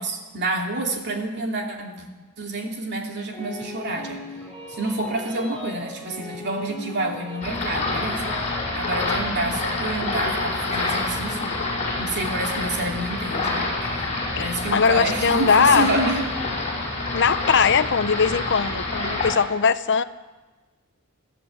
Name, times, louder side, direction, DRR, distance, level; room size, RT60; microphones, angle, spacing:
voice 1, 0.0-2.1 2.4-4.2 4.7-11.5 12.0-13.6 14.4-16.3, right 2 dB, 50° right, 2 dB, 2.8 m, -28 dB
sound 1, 3.3-8.8, equal, 5° left, 5.2 m, -39 dB
sound 2, 7.4-19.3, left 2 dB, 30° left, 5.4 m, -27 dB
voice 2, 14.4-15.9 17.1-20.0, left 6 dB, 55° left, 12 dB, 0.8 m, -20 dB
22.0 x 14.0 x 8.5 m, 1.3 s
head